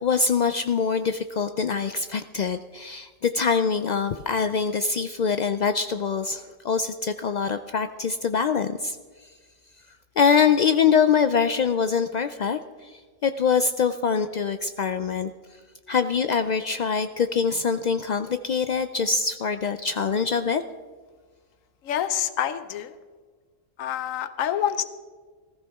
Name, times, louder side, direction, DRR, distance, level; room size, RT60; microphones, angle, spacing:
voice 1, 0.0-9.3 10.2-15.3 15.9-20.6, left 6 dB, 70° left, 9 dB, 0.4 m, -24 dB
voice 2, 21.8-22.9 23.8-24.8, left 10 dB, 90° left, 12 dB, 1.1 m, -27 dB
19.0 x 14.5 x 3.5 m, 1.5 s
omnidirectional pair, 1.3 m